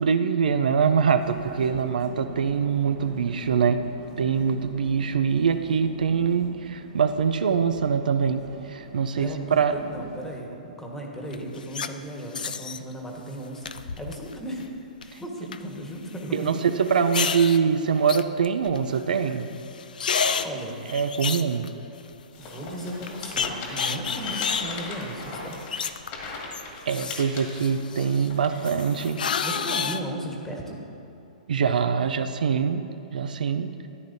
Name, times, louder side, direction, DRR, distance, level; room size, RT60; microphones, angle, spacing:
voice 1, 0.0-3.8 4.2-9.3 9.6-9.8 15.1-15.2 16.3-19.5 20.9-21.7 26.9-29.2 31.5-32.9 33.1-33.7, right 6 dB, 80° right, 9 dB, 0.5 m, -24 dB
Vehicle, 1.2-10.4, right 5 dB, 45° right, 1.0 m, -44 dB
voice 2, 9.2-16.5 20.4-20.8 22.4-25.6 29.4-30.8, right 1 dB, 5° left, -1 dB, 1.4 m, -36 dB
sound 1, 11.3-11.9 12.3-12.8 13.6-14.3 14.6-15.0 15.5-15.6 16.9-17.6 18.1-19.0 19.3-19.4 19.7-22.1 22.5-22.6 23.1-26.3 26.5-28.3 28.6-30.0, left 6 dB, 80° left, 0.4 m, -30 dB
sound 2, 22.3-29.0, left 3 dB, 40° left, 2.0 m, -38 dB
14.0 x 10.0 x 2.7 m, 2.8 s
hypercardioid pair, 135°, 5 cm